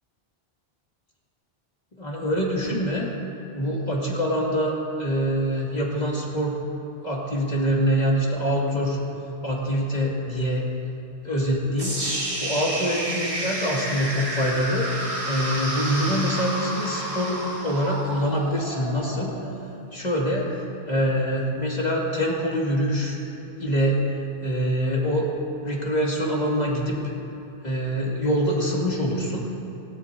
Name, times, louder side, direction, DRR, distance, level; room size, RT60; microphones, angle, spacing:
voice 1, 1.9-3.1 3.5-6.6 7.0-9.0 9.4-10.7 11.2-12.0 12.4-14.9 15.3-19.5 19.9-20.5 20.9-23.2 23.6-24.0 24.4-25.3 25.6-27.0 27.6-29.5, equal, 45° left, -3 dB, 2.3 m, -25 dB
sound 1, 11.8-19.8, right 1 dB, 35° right, 2.0 m, -30 dB
18.0 x 18.0 x 2.7 m, 2.8 s
omnidirectional pair, 1.0 m